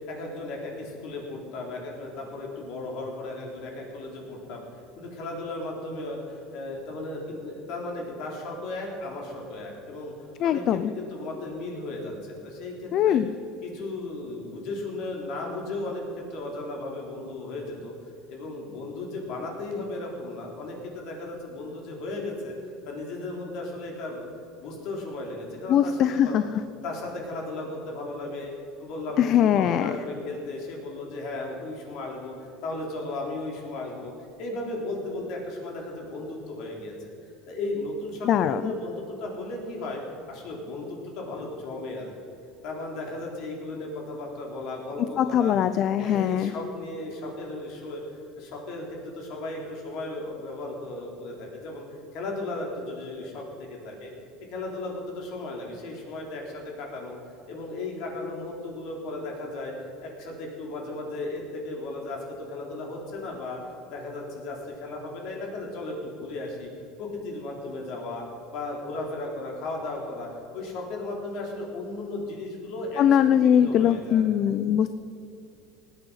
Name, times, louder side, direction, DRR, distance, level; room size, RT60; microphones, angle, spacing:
voice 1, 0.0-10.1 10.4-13.2 13.6-17.9 18.3-22.5 22.9-24.3 24.6-26.4 26.8-28.5 28.8-34.1 34.4-36.9 37.5-40.0 40.3-42.1 42.6-45.5 45.9-51.8 52.1-54.1 54.5-57.2 57.5-59.7 60.0-63.6 63.9-66.7 67.0-68.2 68.5-74.3, left 2 dB, 60° left, 0 dB, 3.6 m, -35 dB
voice 2, 10.4-10.9 12.9-13.3 25.7-26.4 29.2-29.9 38.3-38.6 45.2-46.5 73.0-74.9, left 9 dB, 45° left, 12 dB, 0.4 m, -21 dB
19.0 x 9.0 x 5.7 m, 2.7 s
cardioid pair, 140°, 0 cm